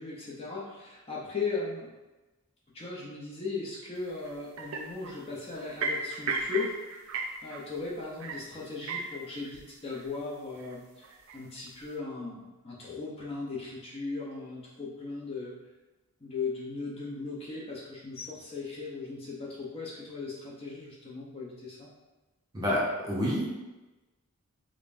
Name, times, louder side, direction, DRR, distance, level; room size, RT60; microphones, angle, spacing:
voice 1, 0.0-1.9 2.7-6.7 7.4-11.1 11.3-15.5 16.2-21.9, left 4 dB, 25° left, -6 dB, 0.7 m, -37 dB
sound 1, 4.3-4.4 4.6-5.1 5.6-7.7 8.0-8.4 8.7-9.6 9.9-10.1 10.4-10.7 11.0-11.6, right 4 dB, 65° right, 0.4 m, -34 dB
voice 2, 22.5-23.5, equal, 15° right, -6 dB, 0.7 m, -28 dB
5.1 x 2.2 x 2.5 m, 1.1 s
head